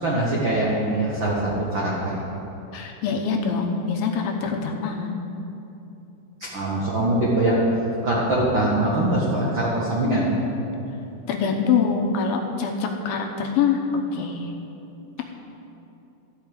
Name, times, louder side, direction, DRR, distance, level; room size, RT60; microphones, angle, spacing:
voice 1, 0.0-2.2 6.4-7.6 8.0-10.3, right 1 dB, 75° right, -5 dB, 1.1 m, -23 dB
voice 2, 2.7-5.2 11.3-13.8 14.1-14.5, left 6 dB, 75° left, 2 dB, 2.5 m, -24 dB
14.0 x 5.8 x 8.6 m, 2.9 s
omnidirectional pair, 4.7 m